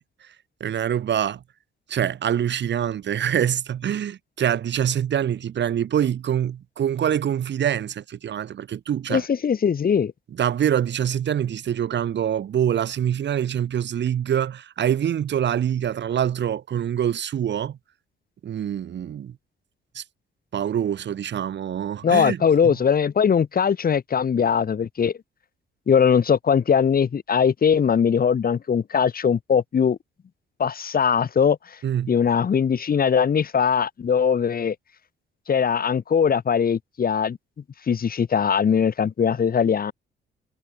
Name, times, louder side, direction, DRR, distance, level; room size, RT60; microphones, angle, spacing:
voice 1, 0.6-1.4 1.9-9.2 10.4-17.8 18.4-19.4 19.9-20.0 20.5-22.8 31.8-32.1, right 9 dB, 65° right, 7.8 m, -25 dB
voice 2, 9.1-10.1 22.0-25.1 25.9-30.0 30.6-31.6 32.1-34.7 35.5-37.4 37.9-39.9, left 7 dB, 45° left, 4.8 m, -20 dB
cardioid pair, 90°, 20 cm